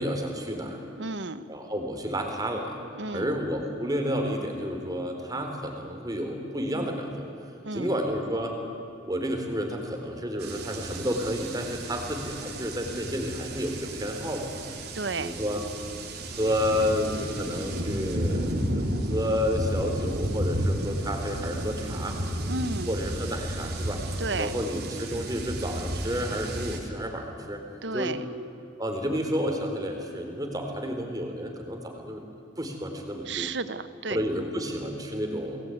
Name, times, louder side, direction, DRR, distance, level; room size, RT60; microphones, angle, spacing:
voice 1, 0.0-0.8 1.5-2.8 3.1-7.3 7.7-8.6 9.1-14.7 15.2-15.6 16.3-22.2 22.9-24.0 24.4-27.6 27.9-28.2 28.8-32.2 32.6-33.5 34.1-35.6, equal, 20° right, 3 dB, 4.1 m, -30 dB
voice 2, 1.0-1.4 3.0-3.4 7.6-8.0 14.9-15.4 22.5-22.9 24.2-24.5 27.8-28.3 33.3-34.2, right 3 dB, 75° right, 13 dB, 1.2 m, -32 dB
sound 1, 10.4-26.8, right 1 dB, 60° right, 3.7 m, -32 dB
29.0 x 20.5 x 9.4 m, 2.8 s
head